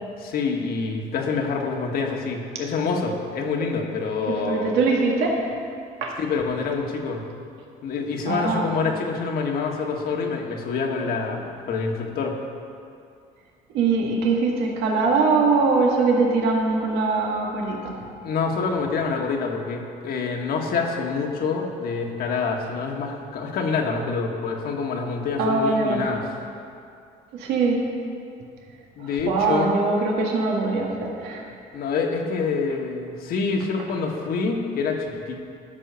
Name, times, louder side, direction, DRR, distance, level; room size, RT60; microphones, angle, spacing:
voice 1, 0.2-4.7 6.2-7.2 7.8-11.4 11.7-12.4 18.2-26.2 29.0-29.7 31.7-35.4, left 4 dB, 65° left, 1 dB, 1.5 m, -26 dB
voice 2, 4.3-5.4 6.0-6.1 8.2-8.7 13.7-18.0 25.4-26.1 27.3-27.8 29.3-31.4, right 4 dB, 85° right, -1 dB, 1.9 m, -22 dB
13.0 x 5.6 x 6.9 m, 2.5 s
cardioid pair, 110°, 17 cm